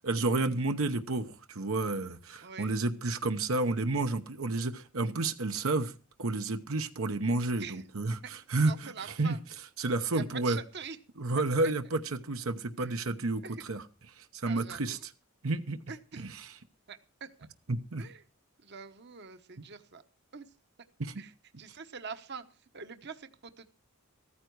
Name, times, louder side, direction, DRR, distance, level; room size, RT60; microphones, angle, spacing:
voice 1, 0.0-5.9 6.2-9.4 9.8-10.6 11.2-13.8 14.2-15.0 15.4-15.8 16.2-16.5 17.7-18.0 21.0-21.1, right 2 dB, 75° right, 7 dB, 1.0 m, -31 dB
voice 2, 2.4-2.7 7.6-7.8 8.2-8.3 8.6-9.4 10.1-11.0 11.6-11.7 12.8-12.9 13.4-13.6 14.5-15.0 15.9-16.2 16.9-17.5 18.0-18.2 18.6-20.0 20.3-20.5 21.2-21.3 21.6-22.5 22.7-23.7, right 6 dB, 50° right, 9 dB, 1.1 m, -44 dB
15.0 x 14.0 x 4.7 m, 0.34 s
head